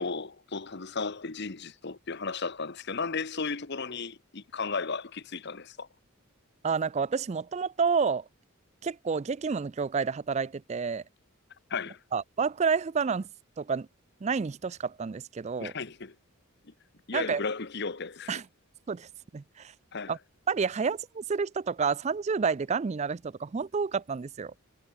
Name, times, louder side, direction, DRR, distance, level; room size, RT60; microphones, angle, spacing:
voice 1, 0.0-5.9 11.7-12.0 15.6-16.1 16.6-16.7 17.1-18.4 19.9-20.2, left 4 dB, 50° left, 1.1 m, -35 dB
voice 2, 6.6-8.2 8.8-11.0 12.1-13.3 13.6-13.9 14.2-15.7 17.1-17.4 18.3-18.4 18.9-19.1 19.3-19.7 20.1-20.2 20.5-24.5, right 5 dB, 30° right, 0.4 m, -29 dB
head